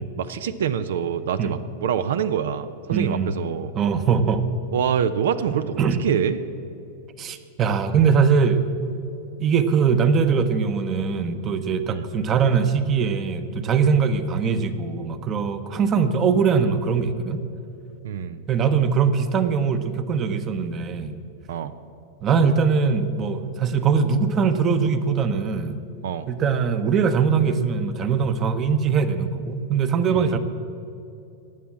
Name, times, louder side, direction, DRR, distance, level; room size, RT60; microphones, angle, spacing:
voice 1, 0.2-3.7 4.7-6.4 11.9-12.0 18.0-18.4 21.5-21.7 26.0-26.3 30.1-30.3, right 8 dB, 80° right, 13 dB, 0.6 m, -25 dB
voice 2, 2.9-3.3 3.7-4.5 5.8-6.0 7.2-8.7 9.4-17.4 18.5-21.2 22.2-25.8 26.3-30.4, right 6 dB, 30° right, 11 dB, 0.9 m, -21 dB
18.5 x 7.2 x 7.7 m, 2.7 s
supercardioid pair, 140°, 0 cm